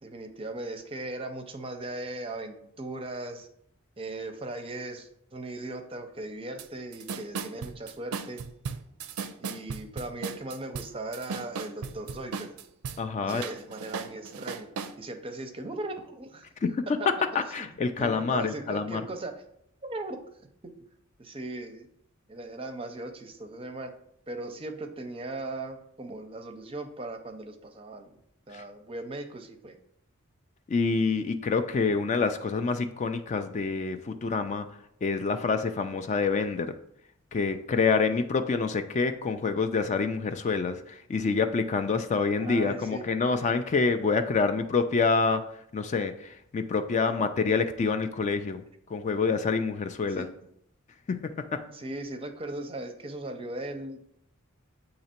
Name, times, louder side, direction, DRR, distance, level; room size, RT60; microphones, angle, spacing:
voice 1, 0.0-3.5 4.0-8.4 9.4-12.6 13.2-16.5 17.5-17.7 18.0-19.3 19.8-20.2 21.2-21.9 22.3-23.9 24.3-28.2 28.5-29.8 42.4-43.1 50.2-50.3 51.7-54.1, right 2 dB, 25° right, 6 dB, 0.5 m, -38 dB
sound 1, 6.6-6.7 6.9-13.0 13.3-14.9, right 5 dB, 85° right, 0.4 m, -36 dB
voice 2, 13.0-13.4 16.6-17.0 17.3-19.0 28.5-28.6 30.7-36.7 37.3-48.6 48.9-50.3 51.1-51.7, left 4 dB, 35° left, 8 dB, 0.3 m, -27 dB
7.6 x 2.9 x 4.3 m, 0.72 s
head